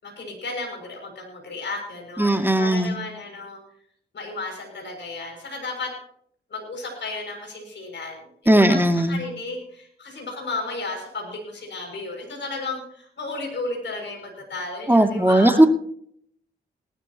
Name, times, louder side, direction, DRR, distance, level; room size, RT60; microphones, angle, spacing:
voice 1, 0.0-3.6 4.1-5.9 6.5-15.6, left 3 dB, 60° left, 1 dB, 6.6 m, -33 dB
voice 2, 2.2-3.0 8.5-9.2 14.9-15.7, right 1 dB, 10° right, 6 dB, 2.4 m, -17 dB
19.5 x 14.0 x 3.0 m, 0.64 s
supercardioid pair, 40°, 20 cm